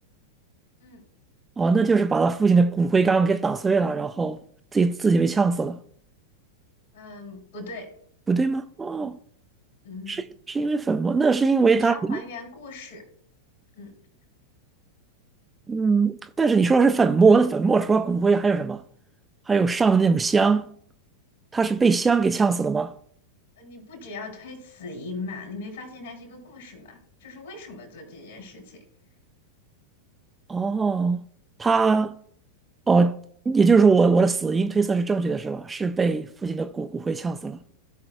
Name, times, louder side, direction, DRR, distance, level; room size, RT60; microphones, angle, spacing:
voice 1, 1.6-4.4 4.7-5.8 8.3-9.2 10.1-12.2 15.7-18.8 19.5-20.7 21.5-22.9 30.5-31.2 31.6-32.1 32.9-33.2 33.5-37.6, right 4 dB, 15° right, 0.4 m, -21 dB
voice 2, 6.9-7.9 9.8-10.2 11.7-13.0 13.8-13.9 23.6-28.8, left 3 dB, 60° left, 3.2 m, -39 dB
16.5 x 5.8 x 2.3 m
figure-of-eight pair, 90°, 0 cm